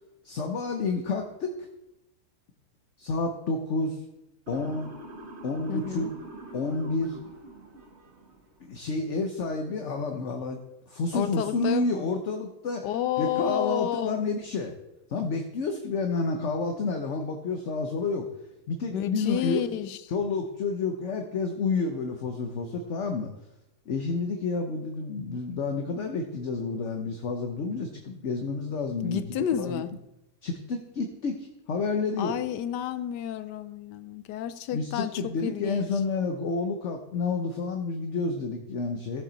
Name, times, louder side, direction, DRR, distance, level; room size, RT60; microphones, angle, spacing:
voice 1, 0.2-1.7 3.0-4.0 4.5-4.9 5.4-6.1 6.5-7.2 8.6-10.6 10.9-12.9 13.2-14.7 15.1-18.3 18.7-19.7 20.1-23.3 23.9-29.8 30.4-32.4 34.7-39.2, left 3 dB, 50° left, 1.1 m, -30 dB
Motor vehicle (road) / Siren, 4.5-8.6, right 1 dB, 40° right, 1.9 m, -45 dB
voice 2, 5.7-6.1 11.1-12.1 12.8-14.2 18.9-20.0 29.0-29.9 32.2-36.0, left 10 dB, 90° left, 1.3 m, -30 dB
15.5 x 7.2 x 4.0 m
omnidirectional pair, 1.8 m